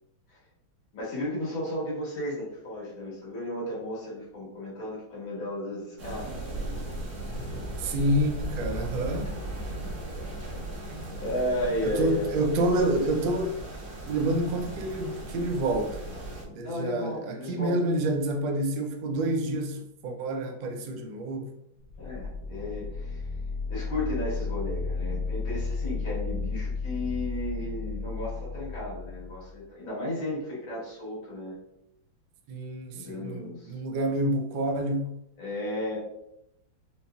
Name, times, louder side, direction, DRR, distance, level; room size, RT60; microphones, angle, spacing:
voice 1, 0.9-6.3 11.2-12.2 12.7-12.8 16.6-17.8 22.0-23.3 23.7-31.6 32.9-33.8 35.4-36.0, left 1 dB, 80° left, 2.3 m, -34 dB
sound 1, 6.0-16.4, right 1 dB, 55° right, 1.4 m, -37 dB
voice 2, 7.8-9.4 11.8-13.6 14.1-16.0 16.4-21.5 32.5-35.1, right 1 dB, 75° right, 1.3 m, -28 dB
sound 2, 21.8-29.6, left 4 dB, 60° left, 1.3 m, -33 dB
5.4 x 2.7 x 2.3 m
omnidirectional pair, 2.2 m